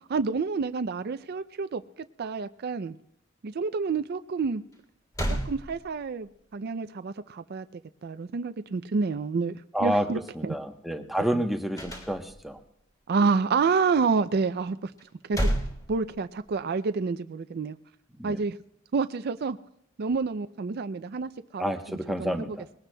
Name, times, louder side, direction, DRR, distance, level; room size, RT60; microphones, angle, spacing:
voice 1, 0.1-1.8 2.2-3.0 3.4-4.6 5.3-10.5 11.3-11.4 13.1-14.9 15.3-15.5 15.9-17.8 18.2-18.6 18.9-19.6 20.0-21.8 22.2-22.4, right 4 dB, 50° right, 11 dB, 0.4 m, -28 dB
sound 1, 4.7-4.8 5.1-6.3 11.7-12.6 15.0-16.6, equal, 20° left, 3.1 m, -31 dB
voice 2, 9.7-10.1 10.3-12.6 18.2-18.4 21.6-22.7, equal, ahead, 5 dB, 0.9 m, -29 dB
21.0 x 18.5 x 2.2 m, 0.77 s
head